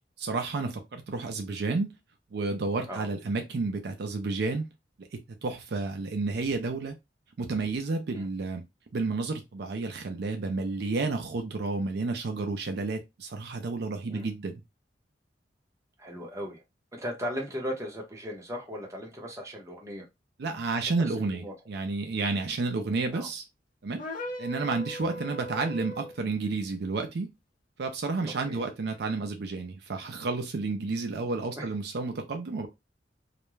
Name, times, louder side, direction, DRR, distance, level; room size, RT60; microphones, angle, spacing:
voice 1, 0.2-1.9 2.3-4.7 5.0-7.0 7.4-8.6 8.9-14.5 20.4-23.4 23.8-24.0 24.4-27.3 27.8-32.7, right 3 dB, 65° right, 0.5 m, -31 dB
voice 2, 16.0-16.6 16.9-20.1 20.8-20.9 21.3-21.5 23.1-23.3 28.3-28.7 31.6-31.7, equal, 15° right, 0.8 m, -37 dB
sound 1, 24.0-26.2, left 1 dB, 50° left, 0.7 m, -38 dB
2.4 x 2.1 x 3.0 m
head